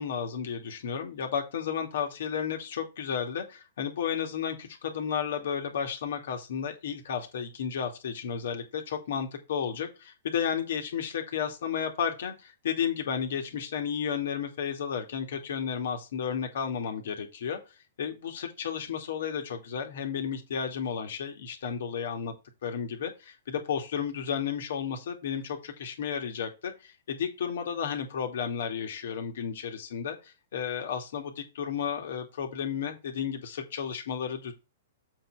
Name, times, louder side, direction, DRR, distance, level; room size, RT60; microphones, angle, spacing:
voice 1, 0.0-17.6 18.0-22.3 22.6-34.5, left 7 dB, 65° left, 4 dB, 2.4 m, -33 dB
7.8 x 4.5 x 4.8 m, 0.28 s
hypercardioid pair, 115°, 0 cm